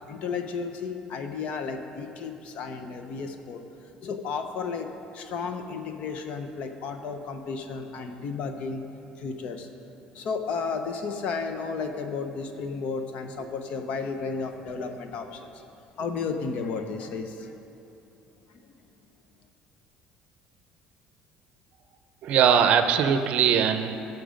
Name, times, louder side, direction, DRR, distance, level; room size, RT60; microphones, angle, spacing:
voice 1, 0.1-4.9 5.1-8.9 9.2-9.7 10.1-15.6 16.0-17.6 18.5-18.7, left 5 dB, 55° left, 6 dB, 0.8 m, -33 dB
voice 2, 22.2-24.0, right 8 dB, 55° right, 8 dB, 0.6 m, -21 dB
14.5 x 6.0 x 5.1 m, 2.9 s
cardioid pair, 155°, 3 cm